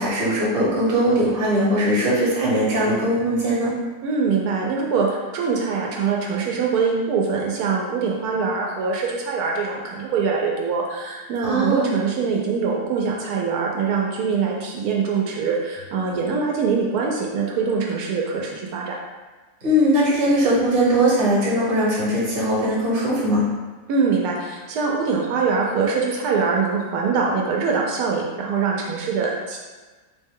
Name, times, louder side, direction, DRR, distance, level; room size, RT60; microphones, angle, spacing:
voice 1, 0.0-3.8 11.4-11.9 19.6-23.4, right 1 dB, 40° right, -6 dB, 1.0 m, -20 dB
voice 2, 4.0-19.0 23.9-29.6, right 5 dB, 85° right, -1 dB, 1.1 m, -23 dB
3.3 x 2.1 x 3.5 m, 1.3 s
omnidirectional pair, 1.6 m